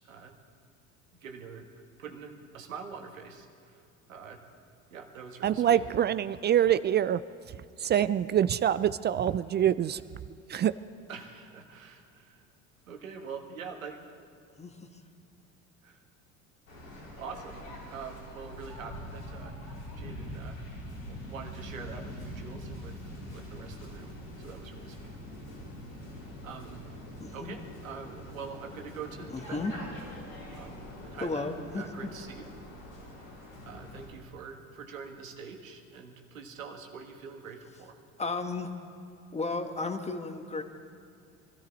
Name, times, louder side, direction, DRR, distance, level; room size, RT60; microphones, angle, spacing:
voice 1, 0.0-0.3 1.1-1.7 2.0-3.8 4.1-4.4 4.9-5.8 11.1-12.4 12.9-14.1 15.8-16.0 17.2-20.6 21.0-24.1 24.4-25.1 26.2-26.8 27.3-29.9 30.2-32.5 33.6-38.0, right 6 dB, 85° right, 3 dB, 1.6 m, -45 dB
voice 2, 5.4-7.2 7.8-10.0 10.5-10.7, right 10 dB, 30° right, 14 dB, 0.4 m, -25 dB
Waves surf, 16.7-34.0, left 1 dB, 90° left, 4.7 m, -44 dB
voice 3, 27.2-27.6 29.3-29.7 31.2-32.1 38.2-38.7 39.3-40.6, left 3 dB, 15° left, 6 dB, 1.5 m, -34 dB
23.5 x 13.5 x 4.1 m, 2.5 s
hypercardioid pair, 65°, 39 cm